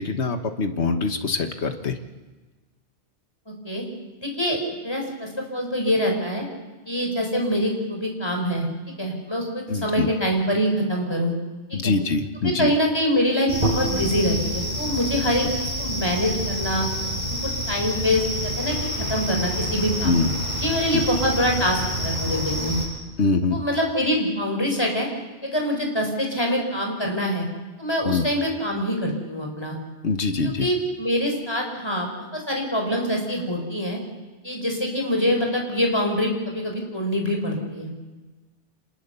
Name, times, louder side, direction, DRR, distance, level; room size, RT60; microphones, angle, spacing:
voice 1, 0.0-2.0 9.7-10.1 11.7-12.7 20.0-20.3 20.9-21.0 23.2-23.6 28.0-28.3 30.0-30.7, left 4 dB, 70° left, 7 dB, 1.6 m, -24 dB
voice 2, 3.5-3.8 4.2-6.4 6.9-8.7 9.0-11.3 11.7-11.9 12.4-16.9 17.3-22.8 23.5-25.1 25.4-27.5 27.8-29.8 30.4-34.0 34.4-37.9, equal, 20° left, 1 dB, 4.6 m, -25 dB
sound 1, 13.5-22.9, equal, 35° right, 6.9 m, -27 dB
26.5 x 20.5 x 6.9 m, 1.3 s
omnidirectional pair, 1.2 m